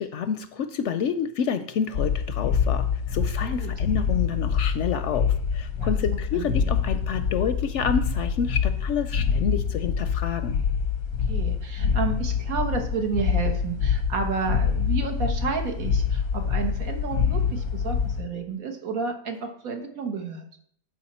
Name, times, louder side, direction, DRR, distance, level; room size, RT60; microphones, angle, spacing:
voice 1, 0.0-10.6, left 7 dB, 65° left, 10 dB, 0.7 m, -28 dB
sound 1, 1.9-18.2, left 6 dB, 90° left, 1.3 m, -26 dB
voice 2, 3.4-3.7 5.8-6.5 11.3-20.4, right 5 dB, 75° right, 4 dB, 1.7 m, -31 dB
12.0 x 4.7 x 4.3 m, 0.62 s
omnidirectional pair, 1.5 m